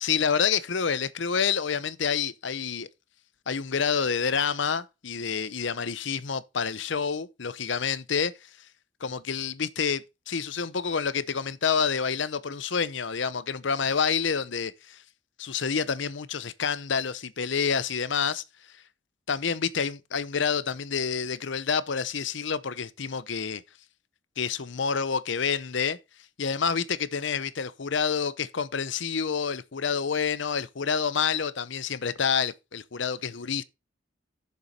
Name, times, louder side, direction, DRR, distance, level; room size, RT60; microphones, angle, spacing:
voice 1, 0.0-2.9 3.5-8.3 9.0-15.0 15.4-18.4 19.3-23.6 24.4-26.0 26.4-33.6, left 6 dB, 70° left, 0.7 m, -28 dB
8.2 x 6.9 x 4.3 m
head